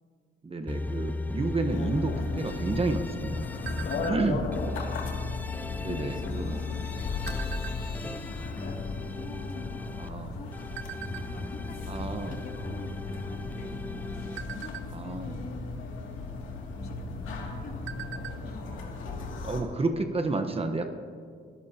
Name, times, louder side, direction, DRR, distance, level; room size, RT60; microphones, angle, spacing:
voice 1, 0.4-3.4 4.0-4.4 5.8-6.6 10.0-10.3 11.9-12.4 14.9-15.3 19.4-20.9, right 3 dB, 30° right, 6 dB, 1.2 m, -30 dB
sound 1, 0.7-4.1 4.5-10.1 10.5-14.4, left 3 dB, 10° left, 0.3 m, -36 dB
sound 2, 1.7-19.6, left 3 dB, 80° left, 2.6 m, -36 dB
sound 3, 3.7-4.5 4.9-5.2 5.5-5.9 6.6-8.1 8.7-8.8 9.0-10.3 10.8-11.3 11.8-12.0 12.3-12.5 13.0-13.5 14.0-15.4 16.4-16.6 17.0-17.1 17.5-18.5 18.8-18.9 19.3-19.4, right 9 dB, 75° right, 0.7 m, -42 dB
voice 2, 3.8-4.8 5.7-7.1 7.4-8.8 9.1-9.6 10.0-10.6 11.3-13.7 14.0-15.6 16.7-18.8, left 3 dB, 50° left, 0 dB, 3.1 m, -46 dB
29.0 x 15.5 x 2.9 m, 2.1 s
cardioid pair, 90°, 20 cm